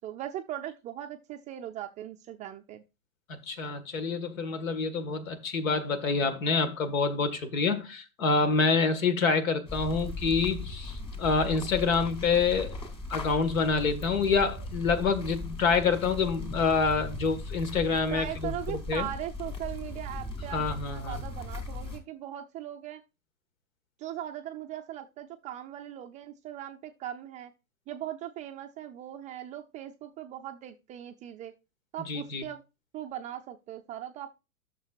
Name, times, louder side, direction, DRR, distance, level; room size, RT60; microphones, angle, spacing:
voice 1, 0.0-2.8 18.1-23.0 24.0-27.5 27.9-31.5 31.9-32.6 32.9-34.3, right 11 dB, 20° right, 0.4 m, -39 dB
voice 2, 3.5-12.8 13.1-19.1 20.5-21.2 32.1-32.4, left 4 dB, 65° left, 1.9 m, -27 dB
sound 1, 9.7-22.0, left 2 dB, 10° left, 2.8 m, -38 dB
13.0 x 6.7 x 2.5 m
figure-of-eight pair, 105°, 43 cm